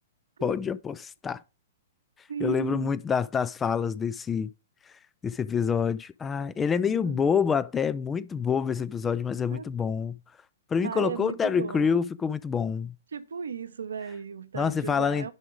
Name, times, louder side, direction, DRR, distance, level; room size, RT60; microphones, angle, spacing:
voice 1, 0.4-1.4 2.4-4.5 5.2-10.2 10.7-12.9 14.5-15.3, left 6 dB, 15° left, 0.3 m, -27 dB
voice 2, 2.3-2.9 6.8-7.3 9.5-9.7 10.8-11.9 13.1-15.3, right 6 dB, 65° right, 0.8 m, -35 dB
10.5 x 3.7 x 5.0 m
figure-of-eight pair, 110°, 0 cm